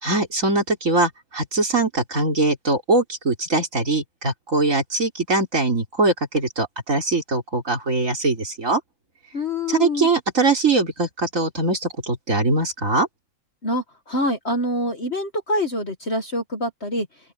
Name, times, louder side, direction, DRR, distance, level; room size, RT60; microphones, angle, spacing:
voice 1, 0.0-8.8 9.7-13.1, right 3 dB, 45° right, 4.1 m, -22 dB
voice 2, 9.3-10.1 13.6-17.1, left 1 dB, 35° left, 1.7 m, -25 dB
open air
omnidirectional pair, 2.0 m